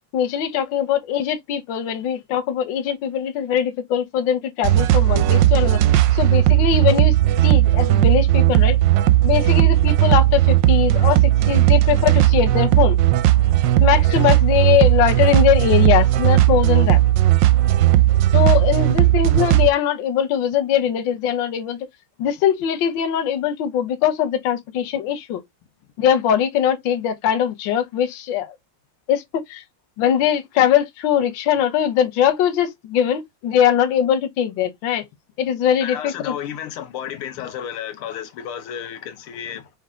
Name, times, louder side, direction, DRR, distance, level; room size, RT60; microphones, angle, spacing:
voice 1, 0.1-5.8 6.1-7.1 7.4-8.8 9.2-13.0 13.8-17.0 18.3-21.8 22.2-25.4 26.0-28.5 29.1-29.6 30.0-35.1 35.4-36.3, left 9 dB, 65° left, 1.4 m, -21 dB
sound 1, 4.6-19.7, right 14 dB, 75° right, 1.1 m, -16 dB
voice 2, 35.8-39.7, left 9 dB, 80° left, 1.7 m, -32 dB
5.6 x 2.2 x 3.6 m
omnidirectional pair, 2.4 m